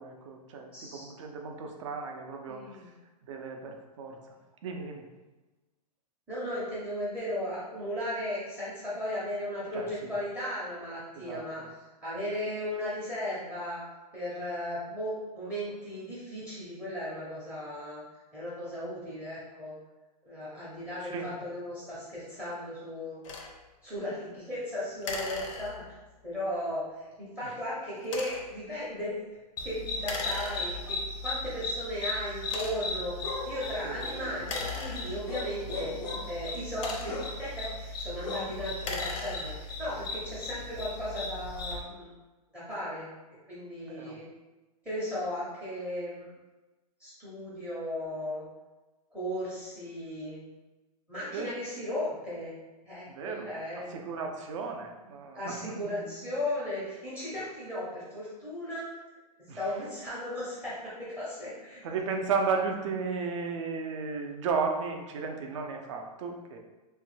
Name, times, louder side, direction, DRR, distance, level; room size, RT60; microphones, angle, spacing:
voice 1, 0.0-2.6 3.3-4.2 4.6-5.1 9.7-10.1 11.2-11.7 21.0-21.3 27.4-27.5 33.8-34.0 38.3-38.5 43.8-44.2 51.3-51.5 53.1-53.5 53.8-56.2 59.5-59.7 61.8-66.6, right 5 dB, 50° right, 3 dB, 0.5 m, -34 dB
voice 2, 0.7-1.1 2.5-2.9 6.3-11.6 12.0-13.8 14.1-18.0 18.3-19.7 20.3-23.2 23.8-26.0 26.2-29.2 29.6-35.9 36.3-42.1 42.5-43.1 43.5-44.3 44.8-46.3 47.0-48.4 49.1-50.4 51.1-52.6 52.8-53.9 55.3-58.9 59.5-61.8, left 1 dB, 5° right, -8 dB, 0.6 m, -36 dB
sound 1, 23.2-23.5 25.0-26.1 28.0-28.6 30.0-31.0 31.7-31.8 32.4-33.0 34.4-35.5 36.5-37.4 38.7-39.8, left 4 dB, 50° left, 0.5 m, -38 dB
sound 2, 29.6-41.8, left 2 dB, 85° left, 0.8 m, -37 dB
3.1 x 2.2 x 3.1 m, 1.1 s
hypercardioid pair, 155°, 21 cm